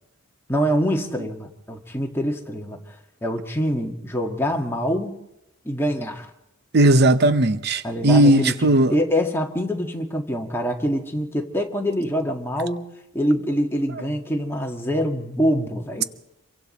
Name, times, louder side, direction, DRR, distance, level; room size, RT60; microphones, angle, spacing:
voice 1, 0.5-3.0 3.2-5.2 5.6-6.3 7.8-16.0, equal, 10° left, 1.7 m, -25 dB
voice 2, 6.7-8.9, right 1 dB, 50° right, 0.7 m, -17 dB
27.0 x 23.5 x 4.2 m
head